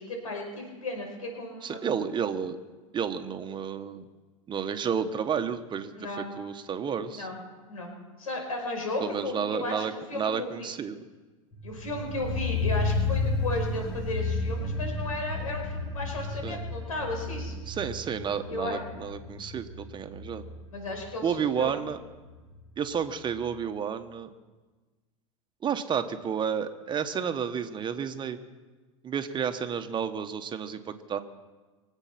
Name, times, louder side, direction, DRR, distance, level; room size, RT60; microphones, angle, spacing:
voice 1, 0.0-1.8 5.9-6.3 7.1-7.4 7.7-7.9 8.2-10.7 11.6-17.5 18.5-18.8 20.7-21.8, left 2 dB, 85° left, 2 dB, 5.2 m, -34 dB
voice 2, 1.6-2.6 2.9-4.1 4.5-5.9 6.2-7.3 9.0-11.0 16.4-16.6 17.7-20.4 21.2-22.0 22.8-24.3 25.6-28.4 29.0-31.2, right 7 dB, 25° right, 8 dB, 1.3 m, -31 dB
sound 1, 11.5-22.5 22.8-22.9, left 3 dB, 55° left, 4.5 m, -32 dB
24.5 x 8.3 x 5.9 m, 1.3 s
hypercardioid pair, 100°, 18 cm